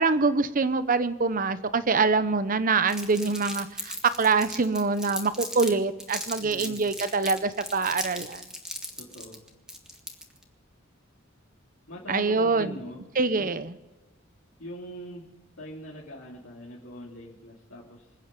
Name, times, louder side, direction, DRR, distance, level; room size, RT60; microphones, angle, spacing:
voice 1, 0.0-8.4 12.1-12.8 13.2-13.7, right 4 dB, 45° right, 13 dB, 0.8 m, -25 dB
Crumpling crinkling, 2.9-5.7 6.0-10.4, equal, 5° right, 1.7 m, -37 dB
voice 2, 6.4-6.9 8.9-9.4 11.9-13.0 13.3-13.5 14.6-18.1, equal, 75° left, -6 dB, 3.0 m, -42 dB
26.0 x 9.1 x 5.3 m, 1.1 s
head